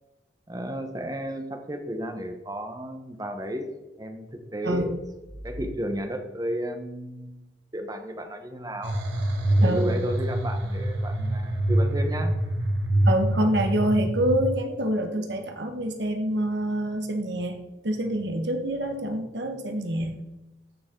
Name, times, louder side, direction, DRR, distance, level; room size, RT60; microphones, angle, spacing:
voice 1, 0.5-3.7 4.0-5.0 5.4-7.4 7.7-9.0 9.6-12.3, equal, 20° right, 5 dB, 1.1 m, -33 dB
sound 1, 8.8-14.5, right 1 dB, 90° right, 1.6 m, -25 dB
voice 2, 13.0-17.6 17.8-20.1, right 1 dB, 70° right, 5 dB, 1.5 m, -26 dB
14.5 x 6.9 x 3.8 m, 1.0 s
head